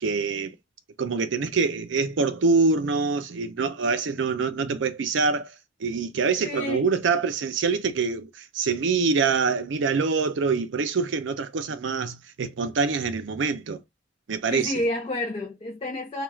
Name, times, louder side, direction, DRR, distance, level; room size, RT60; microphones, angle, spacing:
voice 1, 0.0-0.5 1.0-5.5 5.8-13.8 14.3-14.7, right 4 dB, 75° right, 0.5 m, -25 dB
voice 2, 6.4-6.9 14.5-16.2, left 1 dB, 30° left, 0.4 m, -29 dB
2.3 x 2.2 x 3.1 m
head